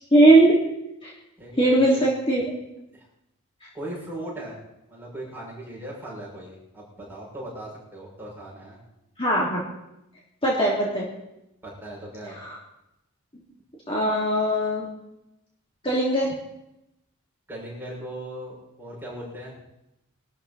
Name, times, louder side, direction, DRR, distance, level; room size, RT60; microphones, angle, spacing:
voice 1, 0.1-0.6 1.0-1.1 1.6-2.4 3.6-3.7 9.2-9.6 10.4-11.1 12.4-12.5 13.9-14.9 15.8-16.3, right 1 dB, 25° left, -5 dB, 3.0 m, -19 dB
voice 2, 1.4-2.1 2.9-3.0 3.7-4.6 4.9-8.8 11.6-12.4 17.5-19.6, right 1 dB, 10° right, -5 dB, 6.6 m, -38 dB
22.0 x 13.0 x 4.2 m, 0.88 s
head